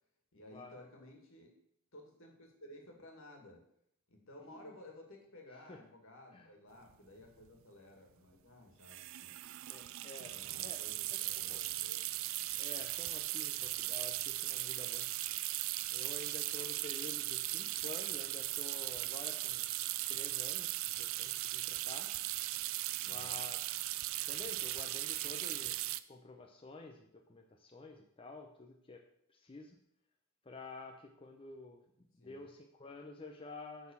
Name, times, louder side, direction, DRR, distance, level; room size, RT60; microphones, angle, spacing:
voice 1, 0.3-1.5 1.9-3.6 4.1-9.3 10.3-12.1 23.0-23.5 32.2-32.5, left 1 dB, 65° left, 2 dB, 2.2 m, -55 dB
sound 1, 6.9-7.0 7.2-7.5 8.8-26.0, right 16 dB, 65° right, 0.4 m, -38 dB
voice 2, 9.7-10.8 11.1-11.2 11.5-11.6 12.6-15.1 15.9-19.7 20.1-22.1 23.0-23.9 24.3-25.8 26.1-29.0 29.3-29.8 30.4-33.9, left 2 dB, 25° left, 3 dB, 0.6 m, -50 dB
9.5 x 4.2 x 7.2 m, 0.72 s
head